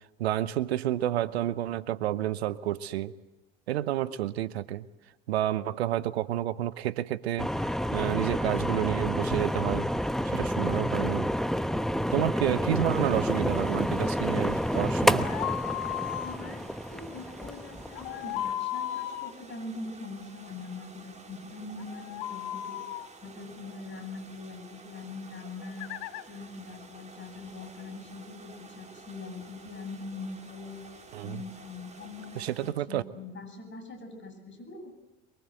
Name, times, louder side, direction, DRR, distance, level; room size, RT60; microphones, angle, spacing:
voice 1, 0.2-3.1 3.7-4.8 5.3-9.9 10.2-11.3 12.1-15.3 31.1-31.4 32.3-33.0, right 12 dB, 85° right, 14 dB, 0.9 m, -30 dB
sound 1, 7.4-18.5, equal, ahead, 1.0 m, -29 dB
sound 2, 12.9-32.7, right 4 dB, 20° right, 5.0 m, -51 dB
sound 3, 15.1-16.4 17.9-19.3 21.8-23.1 25.8-26.2, left 13 dB, 70° left, 1.1 m, -35 dB
voice 2, 16.2-16.6 16.9-22.8 23.2-25.9 26.2-30.9 31.2-34.9, left 3 dB, 40° left, 7 dB, 8.0 m, -42 dB
24.0 x 23.0 x 7.8 m, 1.0 s
hypercardioid pair, 70°, 31 cm